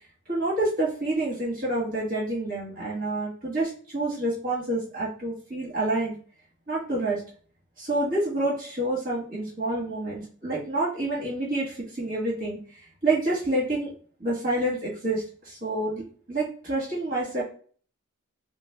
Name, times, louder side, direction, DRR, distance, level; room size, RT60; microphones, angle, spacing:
voice 1, 0.3-6.1 6.7-7.2 7.8-12.6 13.0-13.9 14.2-16.0 16.3-17.4, right 2 dB, 40° right, -6 dB, 1.5 m, -28 dB
5.8 x 2.1 x 2.3 m, 0.43 s
head